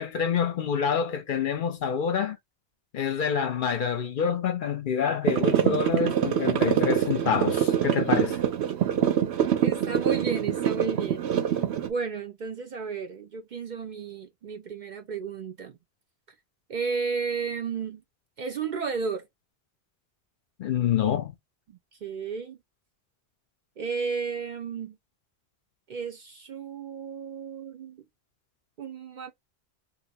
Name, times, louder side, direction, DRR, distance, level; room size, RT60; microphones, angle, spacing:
voice 1, 0.0-2.4 2.9-8.4 20.6-21.3, left 7 dB, 60° left, 0.7 m, -27 dB
sound 1, 5.3-11.9, right 10 dB, 85° right, 0.9 m, -25 dB
voice 2, 9.6-15.8 16.7-18.0 18.4-19.2 21.7-22.6 23.8-25.0 25.9-28.0 28.8-29.3, right 5 dB, 60° right, 0.6 m, -33 dB
2.7 x 2.1 x 4.0 m
omnidirectional pair, 1.1 m